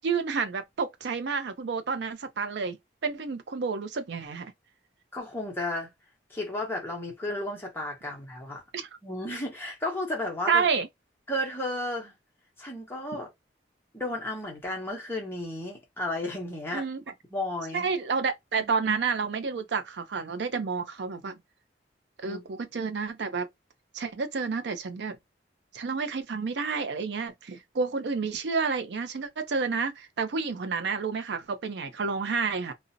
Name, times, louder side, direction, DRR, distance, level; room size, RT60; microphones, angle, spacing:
voice 1, 0.0-2.8 3.0-4.5 8.7-8.9 10.5-10.9 16.7-17.0 17.7-21.4 22.2-23.5 23.9-25.2 25.7-32.7, right 5 dB, 70° right, 0.5 m, -30 dB
voice 2, 5.1-5.9 6.3-8.6 9.0-10.7 11.3-12.1 12.6-13.3 13.9-16.8 17.3-17.9 18.5-18.7 22.2-22.4, left 1 dB, 10° left, 0.8 m, -33 dB
2.5 x 2.0 x 2.5 m
head